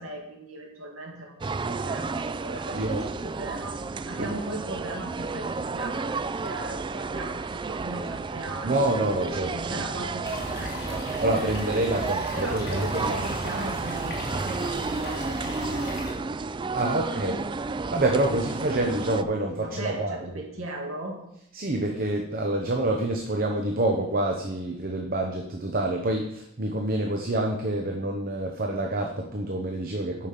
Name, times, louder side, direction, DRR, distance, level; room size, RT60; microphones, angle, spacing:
voice 1, 0.0-8.7 9.4-11.1 12.3-15.9 19.6-21.2, right 1 dB, 90° right, -1 dB, 2.3 m, -38 dB
sound 1, 1.4-19.2, right 4 dB, 25° right, 0.3 m, -32 dB
voice 2, 8.6-9.5 11.2-13.2 16.7-17.4 17.9-20.3 21.5-30.3, right 1 dB, 45° right, 2 dB, 0.9 m, -27 dB
sound 2, 10.2-16.1, left 1 dB, 50° left, 2.4 m, -37 dB
8.5 x 5.6 x 6.7 m, 0.78 s
head